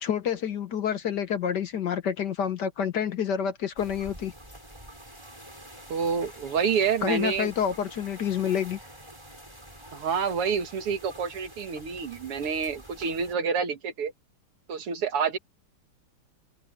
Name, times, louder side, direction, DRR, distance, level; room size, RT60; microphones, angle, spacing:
voice 1, 0.0-4.3 7.0-8.8, left 8 dB, 55° left, 1.4 m, -28 dB
sound 1, 3.8-13.3, right 1 dB, 10° right, 7.6 m, -47 dB
voice 2, 5.9-7.5 9.9-14.1 14.7-15.4, right 6 dB, 85° right, 2.7 m, -28 dB
open air
omnidirectional pair, 2.4 m